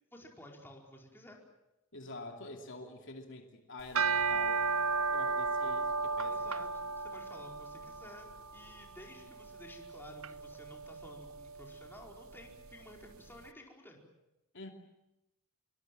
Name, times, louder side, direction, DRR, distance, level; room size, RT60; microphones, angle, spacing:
voice 1, 0.1-1.4 6.3-14.0, left 1 dB, 10° left, 0 dB, 4.8 m, -53 dB
voice 2, 1.9-4.7 5.1-6.4 14.5-14.7, left 2 dB, 60° left, 3 dB, 2.7 m, -47 dB
sound 1, 3.8-13.1, right 4 dB, 75° right, 0.8 m, -35 dB
26.0 x 23.5 x 7.8 m, 0.90 s
head